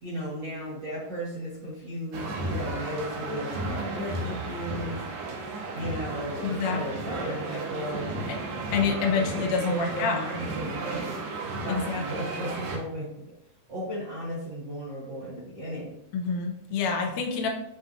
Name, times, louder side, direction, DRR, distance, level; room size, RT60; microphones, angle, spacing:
voice 1, 0.0-5.0 5.7-8.3 8.8-11.1 11.6-13.3 13.7-16.0, equal, 60° right, -8 dB, 1.2 m, -35 dB
sound 1, 2.1-12.8, right 2 dB, 85° right, 2.5 m, -34 dB
voice 2, 6.4-6.8 8.7-10.2 11.7-12.0 16.1-17.5, left 5 dB, 85° left, 1 dB, 2.2 m, -27 dB
7.9 x 2.7 x 2.4 m, 0.82 s
omnidirectional pair, 3.7 m